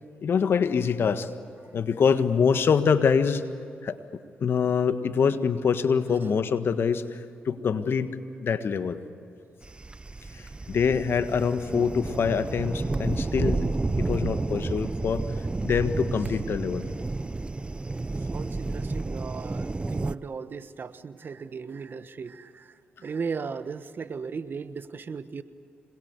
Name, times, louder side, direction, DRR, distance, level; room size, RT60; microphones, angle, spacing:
voice 1, 0.2-1.3 1.7-3.4 3.8-9.0 10.3-13.7 13.9-15.2 15.6-16.8, left 6 dB, 60° left, 10 dB, 1.5 m, -25 dB
sound 1, 9.6-20.1, right 3 dB, 25° right, 0.6 m, -31 dB
voice 2, 18.3-22.7 23.0-25.4, right 5 dB, 50° right, 12 dB, 1.3 m, -36 dB
26.5 x 21.5 x 8.2 m, 2.5 s
supercardioid pair, 55°, 4 cm